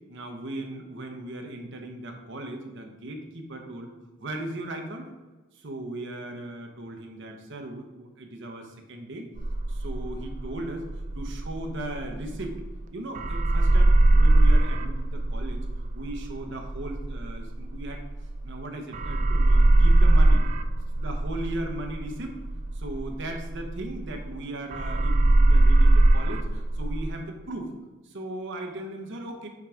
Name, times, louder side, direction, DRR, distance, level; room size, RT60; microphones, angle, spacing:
voice 1, 0.1-3.9 4.2-5.1 5.5-9.2 9.7-12.5 12.9-15.6 15.9-18.0 18.4-20.4 20.9-22.3 22.7-27.7 28.0-29.5, right 1 dB, 60° right, 3 dB, 1.0 m, -37 dB
sound 1, 9.4-12.8 13.1-18.6 18.9-24.4 24.7-27.1, right 2 dB, 35° right, 0.4 m, -21 dB
6.0 x 4.6 x 5.0 m, 1.2 s
head